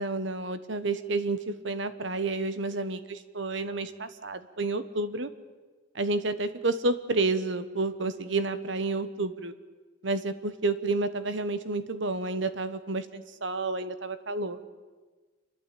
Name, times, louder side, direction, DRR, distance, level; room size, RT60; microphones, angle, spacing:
voice 1, 0.0-5.3 5.9-9.5 10.0-14.6, right 3 dB, 65° right, 12 dB, 1.2 m, -30 dB
28.5 x 11.5 x 8.6 m, 1.3 s
head